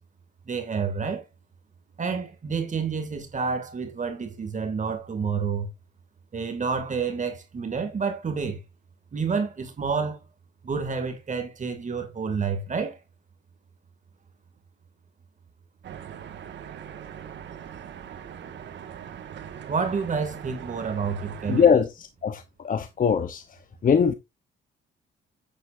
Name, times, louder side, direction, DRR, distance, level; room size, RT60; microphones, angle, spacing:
voice 1, 0.5-1.3 2.0-5.7 6.3-8.6 9.1-10.2 10.6-13.0 19.7-21.6, right 5 dB, 40° right, 2.4 m, -29 dB
sound 1, 15.8-21.7, right 9 dB, 65° right, 1.8 m, -41 dB
voice 2, 21.5-23.4 23.8-24.1, left 6 dB, 45° left, 0.9 m, -22 dB
9.5 x 9.2 x 2.7 m
cardioid pair, 90°, 20 cm